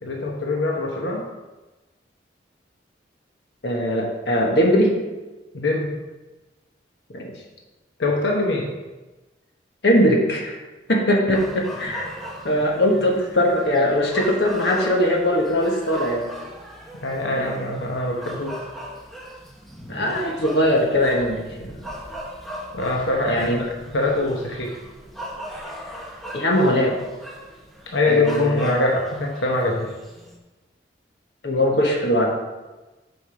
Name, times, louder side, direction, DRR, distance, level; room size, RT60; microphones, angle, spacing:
voice 1, 0.0-1.3 5.5-5.9 8.0-8.7 17.0-18.6 22.7-24.7 27.9-29.9, left 2 dB, 85° left, -1 dB, 1.0 m, -23 dB
voice 2, 3.6-4.9 7.1-7.3 9.8-10.6 10.9-12.1 12.4-16.3 17.3-17.7 19.9-21.9 23.2-23.6 26.3-27.0 28.1-28.7 31.4-32.3, equal, 65° left, 0 dB, 1.4 m, -20 dB
sound 1, 11.3-30.4, right 1 dB, ahead, 1.0 m, -38 dB
8.1 x 5.2 x 5.2 m, 1.2 s
head